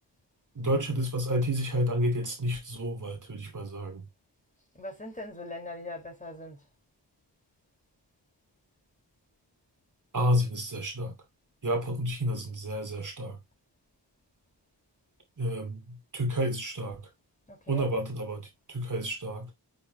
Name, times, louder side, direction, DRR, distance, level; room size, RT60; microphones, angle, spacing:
voice 1, 0.5-4.0 10.1-11.1 11.6-13.4 15.4-17.0 17.7-19.5, equal, 45° right, 2.6 m, -30 dB
voice 2, 4.8-6.6 17.5-17.9, left 2 dB, 20° left, 4.8 m, -40 dB
9.5 x 6.9 x 3.0 m
wide cardioid pair, 125°, 41 cm